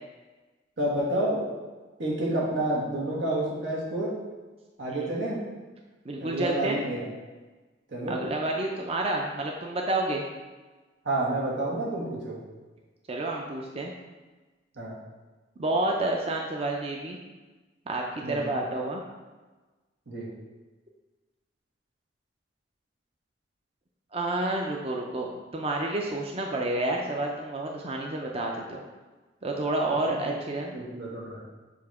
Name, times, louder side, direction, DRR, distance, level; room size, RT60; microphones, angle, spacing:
voice 1, 0.8-1.5 2.0-4.2 4.8-5.4 6.2-7.1 7.9-8.2 11.0-12.4 14.7-15.0 18.2-18.4 20.1-20.3 30.0-31.4, right 1 dB, 90° right, -4 dB, 1.7 m, -29 dB
voice 2, 6.0-6.8 8.1-10.2 13.1-13.9 15.6-17.2 17.9-19.0 24.1-28.8 29.4-30.7, right 2 dB, 35° right, 0 dB, 0.5 m, -29 dB
7.0 x 2.8 x 4.8 m, 1.3 s
head